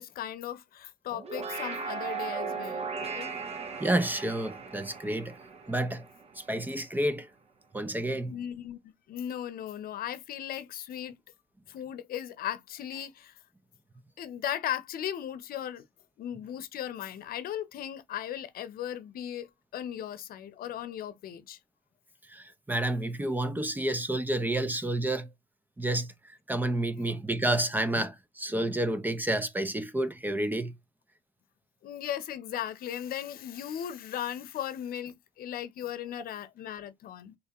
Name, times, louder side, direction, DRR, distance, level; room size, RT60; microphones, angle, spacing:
voice 1, 0.0-3.3 8.3-11.2 11.7-13.4 14.2-15.8 16.2-21.6 31.8-37.4, left 10 dB, 60° left, 0.8 m, -37 dB
sound 1, 1.1-6.6, right 5 dB, 40° right, 1.0 m, -37 dB
voice 2, 3.8-5.4 5.7-6.1 6.4-7.3 7.7-8.4 22.3-25.3 25.8-30.8, right 1 dB, 10° right, 0.6 m, -30 dB
4.2 x 3.3 x 3.0 m
cardioid pair, 110°, 17 cm